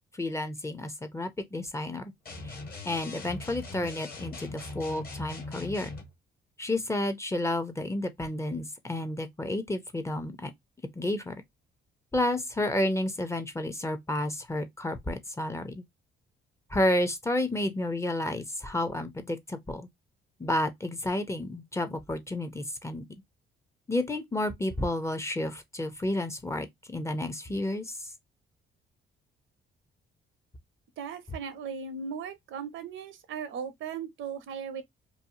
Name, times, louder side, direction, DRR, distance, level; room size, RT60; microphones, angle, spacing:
voice 1, 0.1-2.1 2.4-2.5 2.8-5.9 6.6-10.5 11.0-11.3 12.1-15.8 16.7-19.9 20.4-23.0 23.9-26.7 26.9-28.1, left 1 dB, 15° left, 0.5 m, -31 dB
sound 1, 2.2-6.1, left 2 dB, 50° left, 1.3 m, -40 dB
voice 2, 31.0-34.8, right 6 dB, 75° right, 0.6 m, -37 dB
2.6 x 2.3 x 2.6 m
cardioid pair, 90°, 20 cm